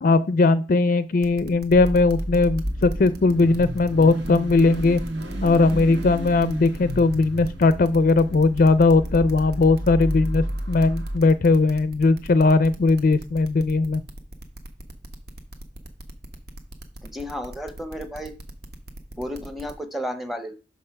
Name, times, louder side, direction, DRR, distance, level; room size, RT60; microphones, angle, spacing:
voice 1, 0.0-5.0 5.4-14.0, left 3 dB, 50° left, 14 dB, 0.4 m, -19 dB
sound 1, 1.2-19.7, right 1 dB, 60° right, 1.1 m, -40 dB
Car / Idling / Accelerating revving vroom, 1.7-11.2, equal, 85° right, 1.3 m, -31 dB
voice 2, 17.0-18.3 19.2-20.6, equal, ahead, 8 dB, 0.7 m, -32 dB
6.1 x 5.4 x 5.8 m, 0.33 s
head